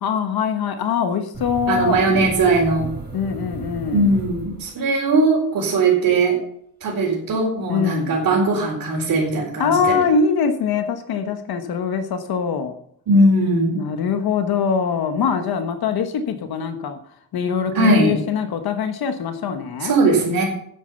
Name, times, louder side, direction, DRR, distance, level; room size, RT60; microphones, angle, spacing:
voice 1, 0.0-2.0 3.1-4.1 7.7-8.2 9.6-12.7 13.7-17.0 17.3-20.0, left 6 dB, 75° left, 7 dB, 1.3 m, -23 dB
sound 1, 1.3-5.1, right 3 dB, 25° right, 4.9 m, -34 dB
voice 2, 1.7-2.9 3.9-6.4 6.8-10.0 13.1-13.8 17.7-18.1 19.8-20.4, right 2 dB, 60° right, -5 dB, 4.4 m, -19 dB
9.4 x 8.7 x 6.9 m, 0.67 s
cardioid pair, 140°, 38 cm